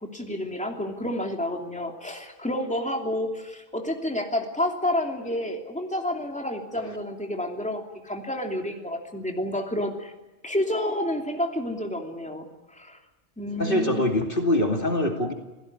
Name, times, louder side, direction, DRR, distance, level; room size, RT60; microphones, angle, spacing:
voice 1, 0.0-10.1 10.4-13.0 13.4-14.1, left 1 dB, 5° left, 2 dB, 2.9 m, -30 dB
voice 2, 13.6-15.3, left 1 dB, 50° left, 3 dB, 2.7 m, -23 dB
27.5 x 17.5 x 9.7 m, 1.1 s
omnidirectional pair, 1.2 m